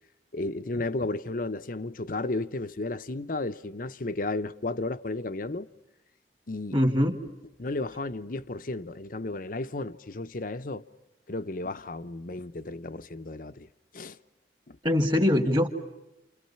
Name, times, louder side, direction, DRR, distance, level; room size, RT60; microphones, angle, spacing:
voice 1, 0.3-5.7 6.5-6.8 7.6-10.8 11.3-13.7 13.9-14.2 14.7-14.8, left 2 dB, 50° left, 0.8 m, -33 dB
voice 2, 6.7-7.2 14.8-15.7, left 1 dB, 30° right, 2.4 m, -23 dB
29.5 x 29.5 x 5.7 m
head